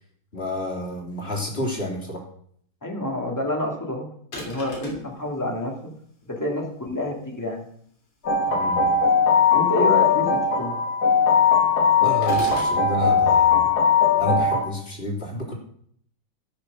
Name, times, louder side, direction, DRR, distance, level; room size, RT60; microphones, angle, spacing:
voice 1, 0.3-2.2 8.5-8.9 12.0-13.7 14.2-15.5, left 1 dB, 30° left, -1 dB, 3.5 m, -30 dB
voice 2, 2.8-4.1 4.4-5.9 6.2-7.7 9.5-10.8, left 1 dB, 10° left, 1 dB, 2.1 m, -28 dB
sound 1, 4.3-5.1 12.2-12.8, left 1 dB, 90° left, 4.4 m, -35 dB
sound 2, 8.2-14.7, left 5 dB, 50° left, 2.8 m, -19 dB
16.0 x 6.6 x 6.2 m, 0.65 s
omnidirectional pair, 2.3 m